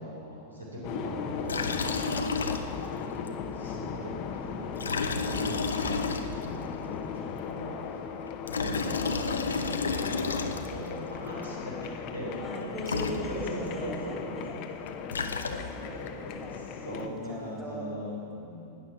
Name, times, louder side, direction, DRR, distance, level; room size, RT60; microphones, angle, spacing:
voice 1, 0.0-1.9 2.2-8.0 8.5-12.4 12.9-13.0 13.3-14.9 16.1-18.8, equal, 80° right, -4 dB, 3.4 m, -40 dB
sound 1, 0.8-17.1, left 6 dB, 40° left, 1.0 m, -37 dB
Liquid, 1.5-3.0 3.3-3.4 4.7-6.6 8.3-10.9 12.6-12.7 12.8-13.7 14.8-16.0, left 4 dB, 70° left, 0.8 m, -31 dB
voice 2, 12.4-14.6 15.5-18.2, left 1 dB, 10° right, -3 dB, 3.9 m, -40 dB
17.0 x 10.5 x 5.9 m, 2.7 s
figure-of-eight pair, 90°, 0 cm